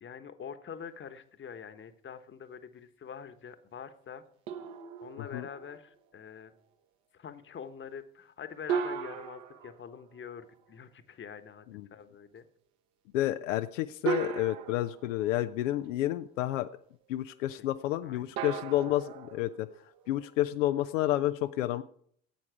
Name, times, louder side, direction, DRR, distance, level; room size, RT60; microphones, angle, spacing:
voice 1, 0.0-4.2 5.0-6.5 7.1-11.7 11.9-12.5 13.3-13.5 18.0-18.4, left 7 dB, 30° left, 11 dB, 1.2 m, -45 dB
sound 1, 4.5-5.9 8.7-10.7 12.4-12.5 14.1-15.9 18.4-20.4, right 7 dB, 55° right, 1.4 m, -37 dB
voice 2, 13.1-16.7 17.1-19.7 20.1-21.8, left 14 dB, 70° left, 10 dB, 0.6 m, -30 dB
16.0 x 8.4 x 4.7 m, 0.62 s
figure-of-eight pair, 60°, 39 cm